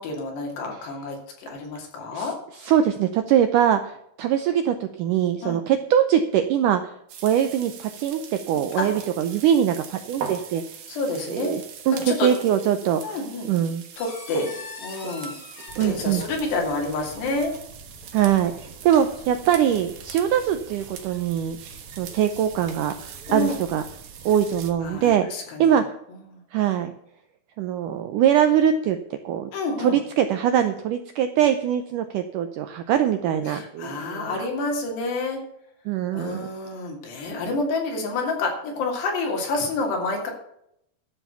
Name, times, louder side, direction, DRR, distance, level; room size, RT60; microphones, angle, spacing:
voice 1, 0.0-2.4 5.4-5.6 8.7-8.9 10.9-11.6 11.9-12.3 13.0-13.5 14.0-15.3 15.8-17.5 23.3-23.6 24.8-25.8 26.1-26.4 29.5-30.0 33.5-35.4 36.1-40.3, left 3 dB, 90° left, 1 dB, 4.8 m, -28 dB
voice 2, 2.6-6.9 7.2-10.8 11.3-11.6 11.9-13.2 13.5-13.8 15.8-16.2 18.1-21.6 22.0-23.0 23.3-23.8 24.3-25.3 25.6-25.8 26.5-26.9 27.6-29.5 29.8-34.4 35.9-36.5, right 9 dB, 85° right, 8 dB, 1.8 m, -22 dB
sound 1, 7.1-24.7, right 7 dB, 70° right, 3.5 m, -41 dB
sound 2, 13.9-17.0 18.6-19.9 20.8-21.2, left 4 dB, 45° left, 1.8 m, -42 dB
sound 3, 15.7-25.2, right 4 dB, 50° right, 2.7 m, -46 dB
12.5 x 7.1 x 6.9 m, 0.75 s
omnidirectional pair, 4.7 m